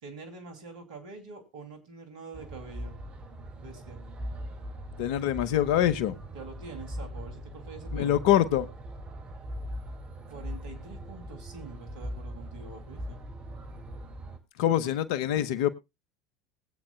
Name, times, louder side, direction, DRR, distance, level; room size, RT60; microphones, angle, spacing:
voice 1, 0.0-3.0 3.6-4.0 6.3-8.2 10.3-13.2, right 4 dB, 70° right, 2.8 m, -45 dB
sound 1, 2.3-14.4, equal, 35° right, 2.3 m, -40 dB
voice 2, 5.0-6.1 7.9-8.7 14.6-15.7, left 11 dB, 60° left, 0.9 m, -24 dB
21.0 x 8.6 x 2.3 m
figure-of-eight pair, 75°, 4 cm